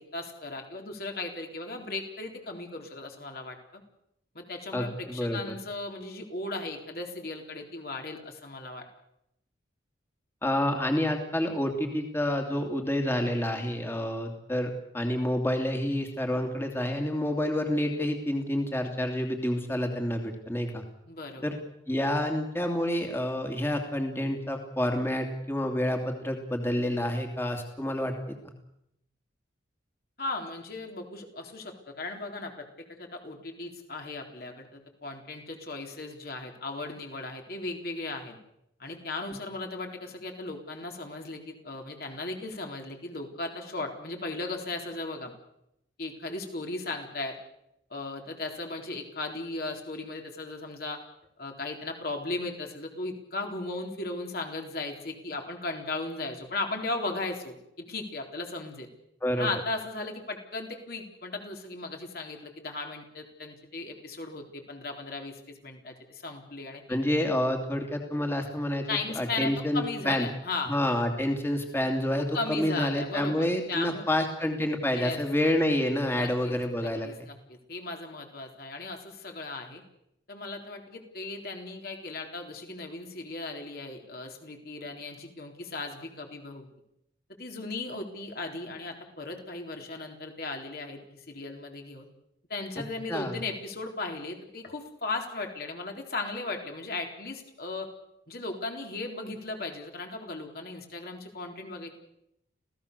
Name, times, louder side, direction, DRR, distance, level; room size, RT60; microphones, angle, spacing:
voice 1, 0.0-3.8 4.3-8.9 21.1-21.6 30.2-38.4 38.8-45.3 46.0-47.4 47.9-51.0 51.4-58.9 59.4-67.0 68.9-70.7 72.2-74.1 74.9-75.2 76.1-79.8 80.3-86.7 87.4-91.0 91.3-92.1 92.5-97.9 98.3-101.9, left 3 dB, 50° left, 2 dB, 3.9 m, -37 dB
voice 2, 4.7-5.4 10.4-20.8 21.4-21.5 21.9-28.4 59.2-59.5 66.9-68.9 69.2-70.3 70.7-77.1 93.1-93.4, left 1 dB, 10° left, 4 dB, 2.7 m, -28 dB
27.0 x 17.0 x 6.8 m, 0.80 s
head